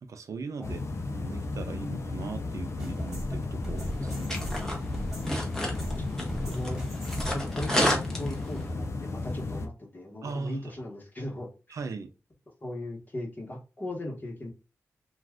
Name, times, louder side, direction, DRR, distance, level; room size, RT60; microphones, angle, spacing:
voice 1, 0.0-0.8 1.1-4.5 10.2-10.6 11.7-12.1, right 4 dB, 70° right, 0.5 m, -39 dB
sound 1, 0.6-9.7, left 3 dB, 55° left, 0.5 m, -34 dB
sound 2, 2.8-7.5, right 1 dB, 10° right, 1.6 m, -39 dB
sound 3, 3.8-8.7, equal, 10° left, 0.9 m, -32 dB
voice 2, 5.3-6.8 7.3-11.8 12.6-14.5, left 1 dB, 35° left, 1.1 m, -38 dB
2.4 x 2.4 x 3.3 m
wide cardioid pair, 90°, 6 cm